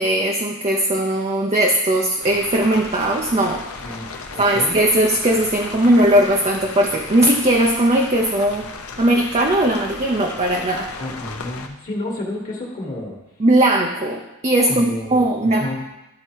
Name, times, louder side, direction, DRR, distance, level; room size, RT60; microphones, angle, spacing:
voice 1, 0.0-4.0 4.4-8.7 9.0-10.9 13.4-15.7, right 1 dB, 30° right, 1 dB, 0.7 m, -18 dB
sound 1, 2.2-11.7, left 4 dB, 70° left, 0.8 m, -36 dB
voice 2, 3.8-4.7 10.9-13.2 14.7-15.9, left 1 dB, 35° left, -2 dB, 1.5 m, -30 dB
12.5 x 4.3 x 4.5 m, 0.93 s
head